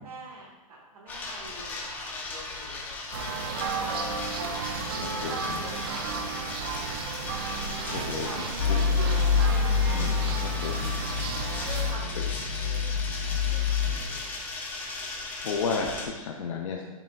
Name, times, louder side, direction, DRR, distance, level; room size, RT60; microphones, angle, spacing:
voice 1, 0.0-3.2 3.8-4.5 5.2-6.6 8.1-10.1 11.6-14.5, right 2 dB, 90° right, -3 dB, 1.7 m, -44 dB
sound 1, 1.1-16.1, left 3 dB, 10° left, 0.5 m, -37 dB
sound 2, 3.1-11.9, right 4 dB, 40° right, 0.5 m, -33 dB
voice 2, 5.2-5.6 7.9-8.3 8.7-8.8 9.9-11.0 15.4-16.8, left 5 dB, 60° left, 1 dB, 0.6 m, -33 dB
sound 3, 8.6-14.0, left 6 dB, 40° left, 0.9 m, -27 dB
7.0 x 5.8 x 2.4 m, 1.2 s
hypercardioid pair, 160°, 19 cm